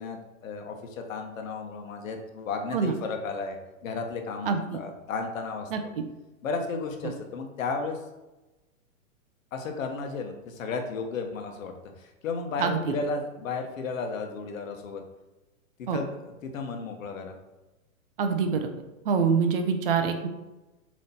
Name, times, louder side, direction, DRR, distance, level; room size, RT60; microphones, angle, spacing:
voice 1, 0.0-5.7 6.4-8.0 9.5-15.0 15.8-17.4, left 4 dB, 65° left, 4 dB, 1.4 m, -34 dB
voice 2, 4.5-4.8 5.7-6.0 7.0-7.1 12.6-13.0 15.9-16.0 18.2-18.7 19.0-20.3, right 5 dB, 40° right, 7 dB, 0.7 m, -25 dB
7.4 x 3.2 x 4.3 m, 1.1 s
hypercardioid pair, 160°, 43 cm